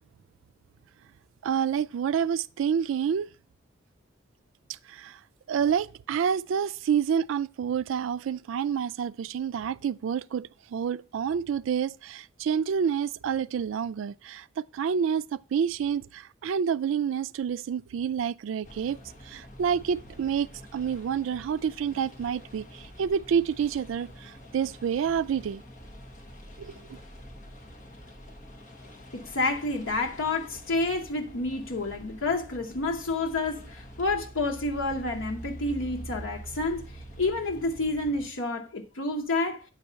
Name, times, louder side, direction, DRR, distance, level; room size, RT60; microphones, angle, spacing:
voice 1, 1.4-3.3 4.9-5.2 5.5-25.6 26.6-27.0, right 7 dB, 80° right, 0.3 m, -28 dB
sound 1, 18.6-38.3, equal, 40° left, 1.2 m, -46 dB
voice 2, 29.1-36.9 37.2-39.6, left 2 dB, 90° left, 0.9 m, -29 dB
8.7 x 4.2 x 5.6 m
head